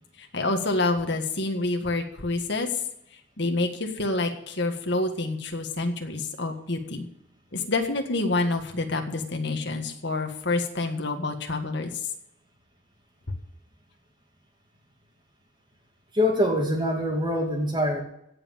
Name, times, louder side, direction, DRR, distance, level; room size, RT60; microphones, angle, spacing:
voice 1, 0.2-2.7 3.4-7.1 7.5-11.9, left 2 dB, 55° left, 4 dB, 1.7 m, -27 dB
voice 2, 16.1-18.0, left 1 dB, 20° right, 1 dB, 2.4 m, -24 dB
16.5 x 5.7 x 8.9 m, 0.77 s
head